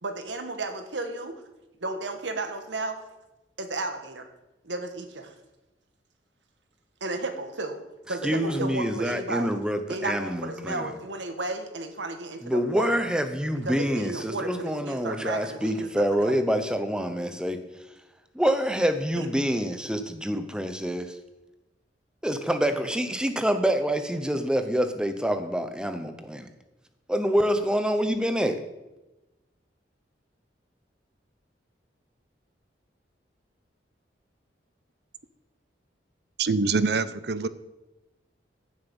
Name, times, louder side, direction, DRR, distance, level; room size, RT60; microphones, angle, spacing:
voice 1, 0.0-1.4 1.8-3.0 3.6-4.3 4.6-5.3 7.0-7.8 8.1-9.5 9.9-13.0 13.6-16.3 19.2-19.3, right 2 dB, 85° right, 7 dB, 1.6 m, -33 dB
voice 2, 8.2-10.9 12.4-17.6 18.3-21.2 22.2-26.5 27.1-28.6, equal, 5° right, 9 dB, 0.8 m, -26 dB
voice 3, 36.4-37.5, right 4 dB, 60° right, 15 dB, 0.6 m, -25 dB
15.5 x 7.3 x 5.4 m, 1.0 s
head